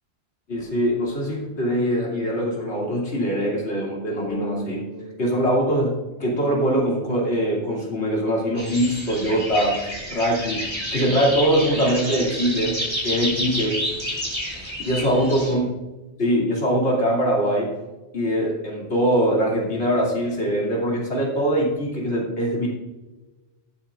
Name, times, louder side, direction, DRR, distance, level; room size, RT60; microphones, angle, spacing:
voice 1, 0.5-4.9 5.2-9.8 10.1-12.8 13.0-13.8 14.6-15.6 16.2-17.7 18.1-22.7, equal, 75° left, -3 dB, 3.0 m, -22 dB
sound 1, 4.3-8.0, equal, 30° left, 1.8 m, -41 dB
sound 2, 8.6-15.5, equal, 25° right, 3.8 m, -29 dB
17.5 x 9.1 x 2.5 m, 1.1 s
omnidirectional pair, 1.2 m